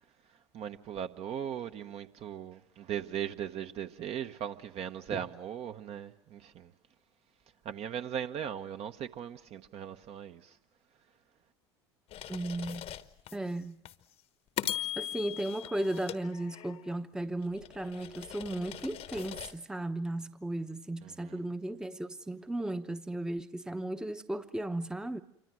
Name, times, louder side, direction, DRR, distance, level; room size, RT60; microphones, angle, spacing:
voice 1, 0.5-6.7 7.6-10.6 21.0-21.4, right 9 dB, 45° right, 1.1 m, -38 dB
sound 1, 12.1-13.4 13.9-14.0 14.6-16.9 17.4-19.6, left 12 dB, 45° left, 1.1 m, -40 dB
voice 2, 12.3-12.9 13.3-13.8 15.0-25.2, right 1 dB, 5° right, 0.9 m, -35 dB
27.5 x 25.0 x 6.3 m
hypercardioid pair, 75°, 14 cm